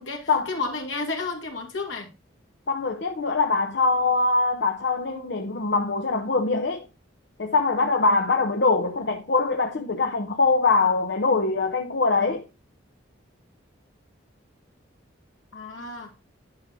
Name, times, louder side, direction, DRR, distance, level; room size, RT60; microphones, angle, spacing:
voice 1, 0.0-2.1 15.5-16.1, left 3 dB, 75° left, 2.3 m, -32 dB
voice 2, 2.7-6.9 7.4-12.5, left 3 dB, 60° left, 0.7 m, -23 dB
10.5 x 6.0 x 2.6 m
head